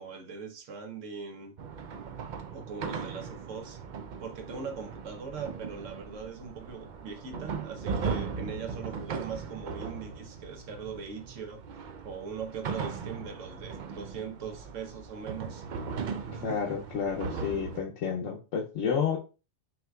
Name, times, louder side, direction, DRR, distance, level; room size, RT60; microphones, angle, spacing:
voice 1, 0.0-1.6 2.5-3.8 4.2-15.6 16.3-16.8, right 6 dB, 90° right, 1.2 m, -41 dB
sound 1, 1.6-17.8, right 5 dB, 60° right, 0.5 m, -38 dB
voice 2, 16.4-19.2, left 7 dB, 90° left, 1.0 m, -30 dB
5.8 x 2.9 x 2.3 m
omnidirectional pair, 1.2 m